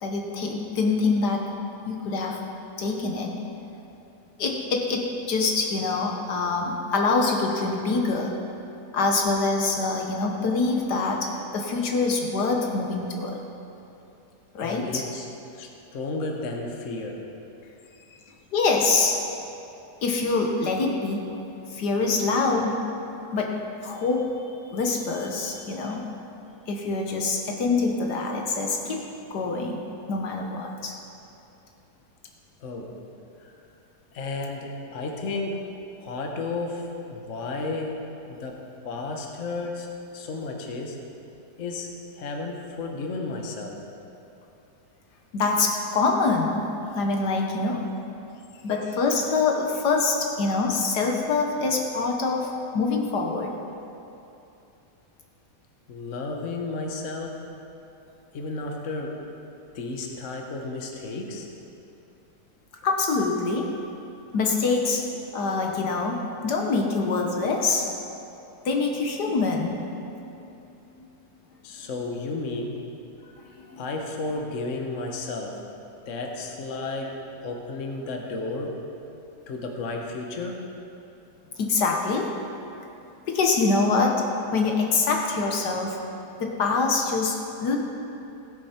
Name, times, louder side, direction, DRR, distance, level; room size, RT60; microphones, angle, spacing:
voice 1, 0.0-1.5 1.9-2.4 2.8-3.3 4.4-8.4 8.9-13.4 14.6-15.0 18.5-19.2 20.0-21.5 21.7-22.9 23.3-23.6 23.8-26.1 26.7-29.1 29.3-31.0 45.3-46.7 47.0-47.8 48.6-53.5 62.8-63.8 64.3-65.1 65.3-67.9 68.7-69.9 70.2-70.5 73.6-73.8 81.6-82.4 83.3-84.3 84.5-86.0 86.4-87.8, left 3 dB, 70° left, 1 dB, 1.7 m, -25 dB
voice 2, 14.6-15.3 15.5-17.3 17.6-18.3 25.9-26.0 32.6-32.9 33.4-33.5 34.1-35.7 36.0-38.6 38.8-39.9 40.1-41.0 41.6-43.8 48.3-48.7 55.9-57.4 58.3-59.2 59.7-61.5 71.6-72.8 73.8-75.6 76.1-78.8 79.5-80.7, left 3 dB, 50° left, 1 dB, 1.4 m, -33 dB
16.0 x 10.5 x 4.4 m, 2.8 s
omnidirectional pair, 1.8 m